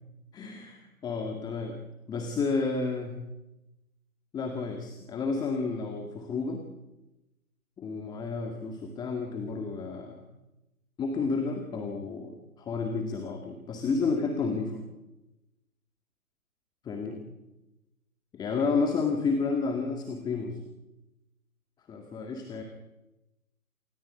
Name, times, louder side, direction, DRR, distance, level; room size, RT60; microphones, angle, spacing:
voice 1, 0.3-1.8 2.1-3.2 4.3-6.6 7.8-10.2 11.0-12.3 12.6-14.8 16.9-17.2 18.3-20.6 21.9-22.6, left 4 dB, 10° left, 4 dB, 1.9 m, -31 dB
28.0 x 19.5 x 9.9 m, 0.99 s
hypercardioid pair, 150°, 44 cm